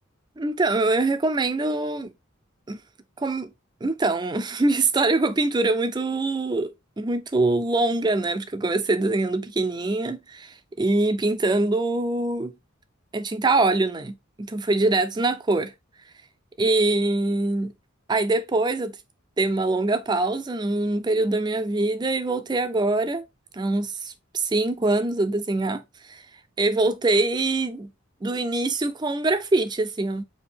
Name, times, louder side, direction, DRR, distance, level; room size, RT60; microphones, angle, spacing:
voice 1, 0.4-2.1 2.7-2.8 3.2-3.5 3.8-6.7 7.0-12.5 13.1-15.7 16.6-17.7 18.1-19.0 19.4-23.2 23.5-25.8 26.1-26.2 26.6-27.9 28.2-30.2, right 2 dB, 20° right, 0.4 m, -24 dB
5.0 x 2.6 x 3.3 m
head